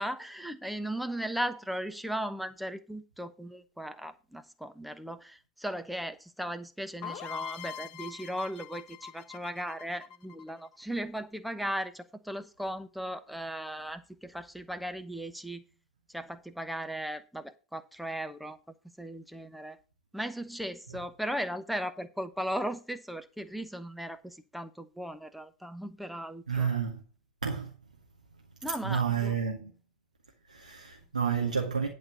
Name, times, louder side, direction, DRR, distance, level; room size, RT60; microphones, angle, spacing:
voice 1, 0.0-15.6 16.1-18.6 19.0-19.8 20.1-26.7 28.6-29.3, right 1 dB, ahead, 0.9 m, -37 dB
sound 1, 7.0-10.8, left 8 dB, 45° left, 1.2 m, -42 dB
voice 2, 26.5-27.0 27.4-27.7 28.7-29.7 30.5-31.9, right 6 dB, 80° right, 1.4 m, -30 dB
11.0 x 4.2 x 7.1 m
figure-of-eight pair, 85°, 4 cm